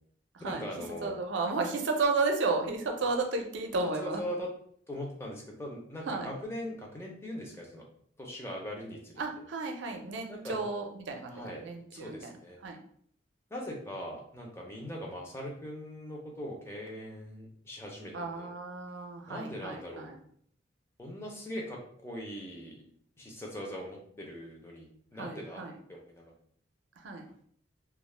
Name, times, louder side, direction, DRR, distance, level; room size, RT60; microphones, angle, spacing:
voice 1, 0.4-1.1 4.0-4.5 4.9-7.8 8.2-9.0 10.3-10.6 11.3-11.7 11.9-12.6 13.5-18.5 19.3-20.1 21.0-22.8 23.2-25.6 25.9-26.3, equal, 15° left, -1 dB, 0.5 m, -40 dB
voice 2, 1.0-4.2 6.1-6.3 9.2-12.3 12.6-12.8 18.1-20.2 25.2-25.7 27.0-27.2, right 3 dB, 80° right, 4 dB, 0.5 m, -33 dB
2.3 x 2.1 x 3.2 m, 0.63 s
head